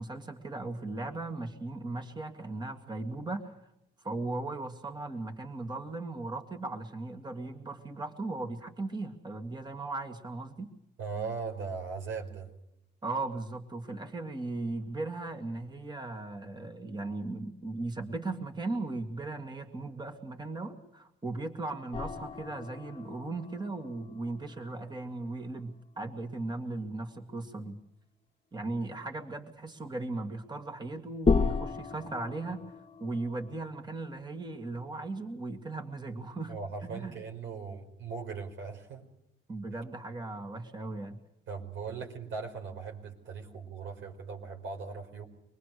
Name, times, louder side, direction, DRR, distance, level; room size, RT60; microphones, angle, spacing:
voice 1, 0.0-3.6 4.0-10.7 13.0-27.8 28.5-32.6 33.0-36.6 36.8-37.2 39.5-41.2, right 2 dB, 20° right, 5 dB, 2.2 m, -37 dB
voice 2, 11.0-12.5 36.5-39.1 41.5-45.3, right 5 dB, 75° right, 3 dB, 5.1 m, -39 dB
sound 1, 21.9-25.4 25.7-25.8 31.2-33.6, left 4 dB, 30° left, 1.6 m, -33 dB
26.0 x 20.5 x 6.8 m, 0.83 s
cardioid pair, 90°, 20 cm